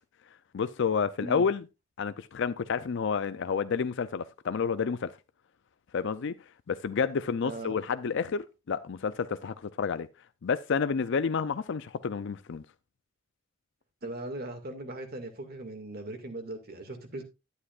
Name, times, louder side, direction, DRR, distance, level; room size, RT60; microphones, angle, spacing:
voice 1, 0.5-1.6 2.0-5.1 5.9-6.3 6.7-10.1 10.4-12.6, left 6 dB, 60° left, 0.4 m, -30 dB
voice 2, 7.4-7.8 14.0-17.2, right 1 dB, 50° right, 2.0 m, -39 dB
11.5 x 9.9 x 2.4 m
head